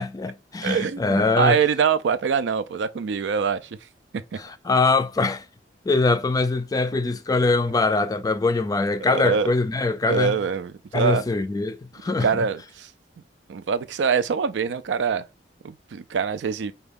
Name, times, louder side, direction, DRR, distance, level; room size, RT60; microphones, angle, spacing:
voice 1, 0.0-1.6 4.4-5.4 5.9-10.4 10.9-12.3, left 3 dB, 20° left, 0.3 m, -23 dB
voice 2, 0.6-3.8 4.1-4.4 9.0-9.5 10.1-11.2 12.2-12.9 13.5-15.2 15.6-16.7, right 6 dB, 85° right, 0.4 m, -24 dB
4.9 x 2.3 x 3.4 m
head